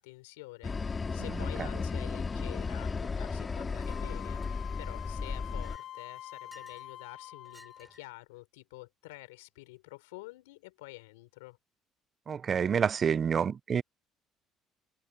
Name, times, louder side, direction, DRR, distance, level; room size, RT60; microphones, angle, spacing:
voice 1, 0.0-11.6, left 22 dB, 85° left, 4.0 m, -49 dB
sound 1, 0.6-5.8, left 4 dB, 30° left, 3.1 m, -34 dB
Chink clink, 3.7-4.0 4.4-4.9 5.4-6.9 7.4-8.2, right 1 dB, 5° right, 7.5 m, -58 dB
Wind instrument woodwind instrument, 3.8-8.0, left 12 dB, 60° left, 5.4 m, -46 dB
voice 2, 12.3-13.8, right 7 dB, 45° right, 0.6 m, -28 dB
hypercardioid pair, 65°, 0 cm